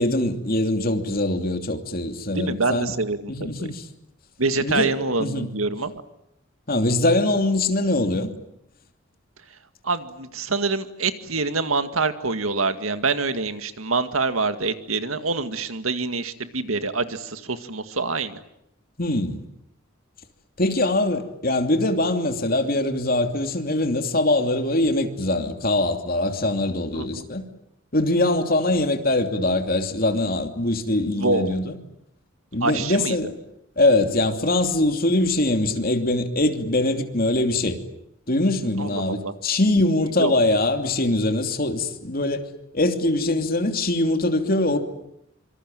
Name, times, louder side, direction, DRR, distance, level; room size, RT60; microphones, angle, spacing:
voice 1, 0.0-2.9 3.3-3.8 4.6-4.9 5.2-5.5 6.7-8.3 19.0-19.4 20.6-27.4 27.9-31.8 32.5-33.3 33.8-37.8 38.3-44.8, left 2 dB, 45° left, 2.9 m, -22 dB
voice 2, 2.3-3.3 3.6-3.7 4.4-5.9 9.8-18.4 26.9-27.2 31.1-31.5 32.6-33.2 38.8-39.3 40.2-40.3, right 3 dB, 90° right, 2.1 m, -25 dB
26.0 x 25.5 x 9.1 m
head